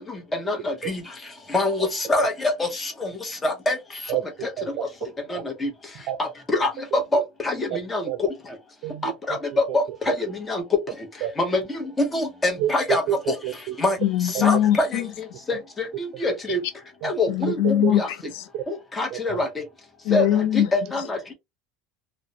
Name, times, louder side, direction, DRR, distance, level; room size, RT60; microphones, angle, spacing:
voice 1, 0.5-1.0 1.5-2.9 3.4-3.7 5.3-5.7 6.2-6.3 6.6-6.7 7.1-8.0 9.0-10.1 10.5-10.6 11.4-11.6 12.1-13.0 13.8-14.0 14.4-15.0 15.8-15.9 16.2-16.6 17.0-18.1 18.7-19.5 20.1-20.2 20.7-21.3, left 2 dB, 15° left, 0.8 m, -24 dB
voice 2, 4.1-4.8 5.3-5.4 6.1-6.2 6.9-7.2 8.1-8.2 8.8-9.1 10.1-10.2 11.2-11.3 12.6-13.2 13.4-13.8 17.0-17.1 17.8-18.0 18.5-18.6 19.1-19.2, right 12 dB, 60° right, 0.4 m, -28 dB
voice 3, 14.0-15.1 17.3-18.4 20.0-20.7, left 11 dB, 80° left, 0.4 m, -22 dB
2.3 x 2.1 x 2.6 m
supercardioid pair, 135°, 0 cm